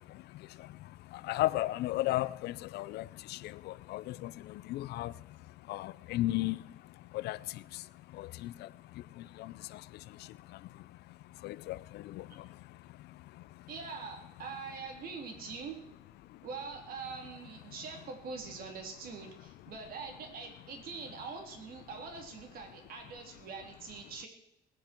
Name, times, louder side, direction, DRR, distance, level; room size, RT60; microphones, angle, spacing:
voice 1, 0.0-13.7 16.2-16.5 17.7-17.8 19.3-19.7, left 16 dB, 75° left, 0.6 m, -38 dB
voice 2, 13.7-15.8 16.4-24.3, right 5 dB, 60° right, 3.5 m, -43 dB
21.0 x 9.9 x 4.5 m
cardioid pair, 110°, 17 cm